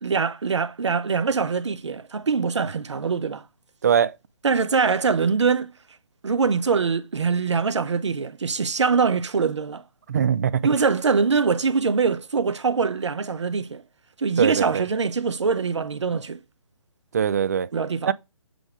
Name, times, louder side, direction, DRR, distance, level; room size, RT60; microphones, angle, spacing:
voice 1, 0.0-3.4 4.4-5.7 6.2-9.8 10.6-13.8 14.2-16.4 17.7-18.1, right 5 dB, 60° right, 0.8 m, -23 dB
voice 2, 10.1-10.6 14.4-14.8 17.1-17.7 18.1-18.2, right 8 dB, 30° right, 0.4 m, -21 dB
7.7 x 3.4 x 5.0 m
figure-of-eight pair, 140°, 17 cm